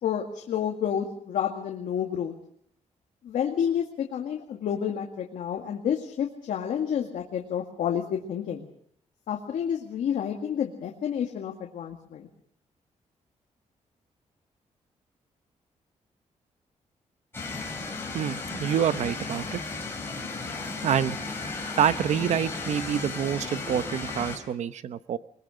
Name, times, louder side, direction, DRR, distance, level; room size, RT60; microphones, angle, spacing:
voice 1, 0.0-2.3 3.2-8.7 9.3-12.3, left 8 dB, 80° left, 1 dB, 2.1 m, -29 dB
sound 1, 17.3-24.4, left 3 dB, 20° left, 4.8 m, -35 dB
voice 2, 18.1-19.6 20.8-21.2 21.8-25.2, right 9 dB, 65° right, 13 dB, 0.9 m, -27 dB
22.0 x 21.5 x 6.4 m, 0.64 s
wide cardioid pair, 170°, 13 cm